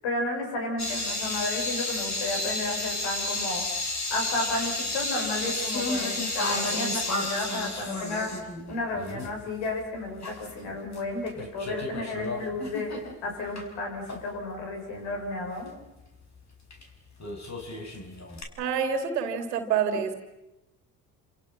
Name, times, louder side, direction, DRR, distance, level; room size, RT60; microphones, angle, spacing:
voice 1, 0.0-3.6 4.1-15.7, left 2 dB, 65° left, 2 dB, 7.7 m, -32 dB
sound 1, 0.8-9.4 9.7-9.8 10.2-11.0 11.3-13.6 14.1-14.2 16.7-16.8 17.2-18.4, left 2 dB, 35° left, 5.3 m, -32 dB
voice 2, 18.6-20.1, right 7 dB, 85° right, 7 dB, 2.7 m, -27 dB
29.0 x 27.5 x 6.0 m, 0.96 s
hypercardioid pair, 55°, 47 cm